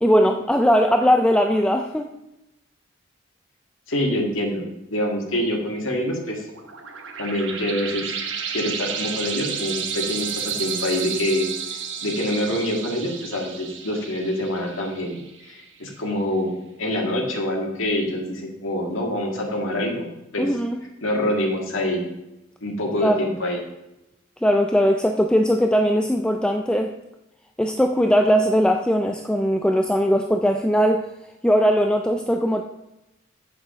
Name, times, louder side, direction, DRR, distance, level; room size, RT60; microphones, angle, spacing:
voice 1, 0.0-2.1 20.4-20.8 23.0-23.4 24.4-26.9 27.6-31.0 31.4-32.6, equal, 5° left, 4 dB, 0.3 m, -19 dB
voice 2, 3.9-6.4 7.2-8.1 8.5-20.1 20.3-20.5 21.0-22.1 22.6-23.6, left 1 dB, 85° left, 0 dB, 1.9 m, -26 dB
sound 1, 6.4-15.6, right 7 dB, 70° right, 1.0 m, -32 dB
8.0 x 6.8 x 5.1 m, 0.93 s
head